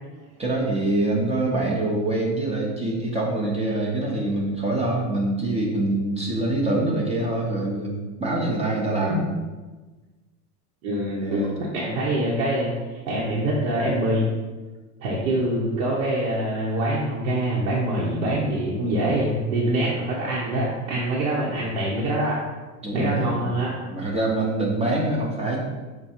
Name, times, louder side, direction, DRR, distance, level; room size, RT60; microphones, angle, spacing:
voice 1, 0.4-9.2 11.1-11.5 22.8-23.5 23.9-25.6, right 2 dB, 15° right, -2 dB, 0.6 m, -25 dB
voice 2, 10.8-12.7 13.1-14.3 15.0-22.4 22.9-23.7, right 1 dB, 70° right, -5 dB, 1.1 m, -24 dB
5.3 x 2.3 x 4.3 m, 1.3 s
supercardioid pair, 120°, 46 cm